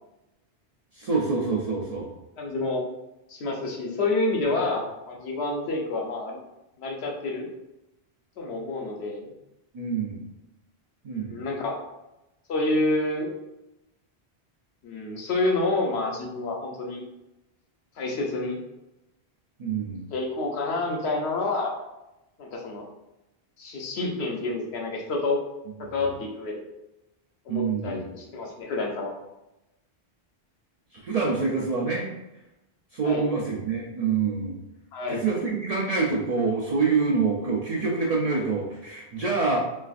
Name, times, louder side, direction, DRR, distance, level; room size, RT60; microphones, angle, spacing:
voice 1, 0.9-2.1 9.7-10.2 11.0-11.4 19.6-20.0 27.5-28.0 31.0-32.1 32.9-34.6 35.1-39.6, right 4 dB, 55° right, -3 dB, 0.4 m, -26 dB
voice 2, 2.4-2.8 3.3-6.4 6.8-7.5 8.4-9.3 11.1-11.8 12.5-13.3 14.8-17.0 18.0-18.6 20.1-21.7 22.4-22.9 23.6-25.4 25.8-26.6 27.4-29.1 33.0-33.3 34.9-35.2 39.5-39.6, left 2 dB, 80° left, 0 dB, 0.9 m, -28 dB
3.3 x 2.4 x 2.4 m, 0.94 s
omnidirectional pair, 1.1 m